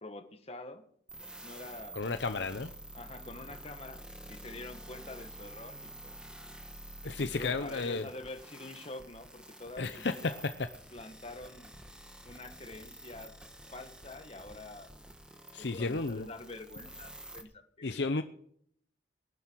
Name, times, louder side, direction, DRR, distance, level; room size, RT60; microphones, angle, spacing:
voice 1, 0.0-0.9 1.4-2.5 2.9-4.0 4.3-6.2 7.2-10.4 10.9-11.7 12.2-13.3 13.7-14.9 15.6-18.1, left 2 dB, 30° left, 7 dB, 1.6 m, -46 dB
sound 1, 1.1-17.4, right 1 dB, 5° right, 1.5 m, -49 dB
voice 2, 1.9-2.7 7.0-8.1 9.8-10.3 15.5-16.3 17.8-18.2, left 3 dB, 60° left, 9 dB, 0.7 m, -33 dB
19.5 x 12.0 x 4.7 m, 0.64 s
head